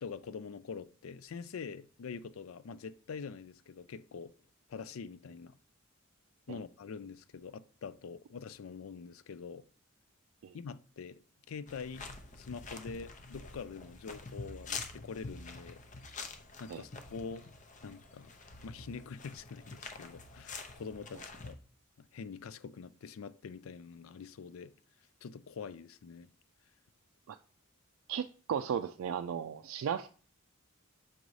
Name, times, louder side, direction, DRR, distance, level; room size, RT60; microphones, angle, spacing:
voice 1, 0.0-4.3 4.7-5.6 6.5-9.7 10.5-11.2 11.5-12.0 12.3-15.8 16.6-17.5 17.8-18.3 18.6-21.6 22.0-24.7 25.2-26.3, left 5 dB, 90° left, 0.4 m, -45 dB
sound 1, 11.7-21.5, left 4 dB, 35° left, 0.6 m, -46 dB
voice 2, 28.1-30.1, right 8 dB, 85° right, 0.3 m, -35 dB
6.0 x 3.9 x 4.8 m
head